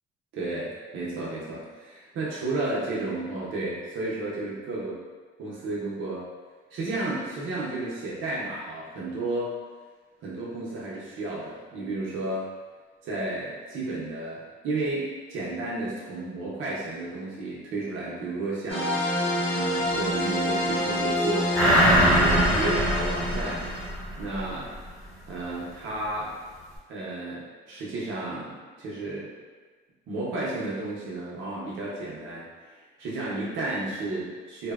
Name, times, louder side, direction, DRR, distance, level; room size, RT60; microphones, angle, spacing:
voice 1, 0.3-5.0 5.4-6.3 6.7-9.6 10.2-12.5 13.0-19.0 19.5-21.6 22.2-23.6 24.2-24.7 25.3-26.3 26.9-29.3 30.1-32.4 32.7-34.7, right 2 dB, 80° right, -6 dB, 0.7 m, -32 dB
sound 1, 18.7-23.9, equal, 70° left, 0.9 m, -27 dB
sound 2, 21.5-24.5 24.8-24.9, equal, ahead, 0.8 m, -22 dB
2.6 x 2.1 x 2.3 m, 1.4 s
cardioid pair, 90°, 20 cm